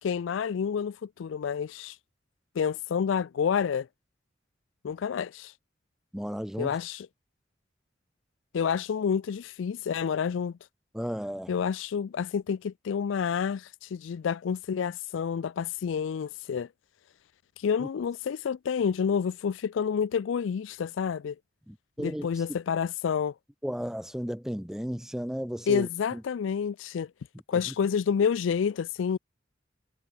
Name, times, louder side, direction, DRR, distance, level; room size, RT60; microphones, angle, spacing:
voice 1, 0.0-2.0 2.6-3.9 4.8-5.5 6.6-7.1 8.5-10.5 11.5-16.7 17.6-21.4 22.0-23.3 25.7-27.1 27.5-29.2, left 7 dB, 75° left, 0.4 m, -29 dB
voice 2, 6.1-6.7 10.9-11.6 17.8-17.9 21.7-22.3 23.6-26.2 27.5-27.7, equal, 5° right, 0.7 m, -34 dB
head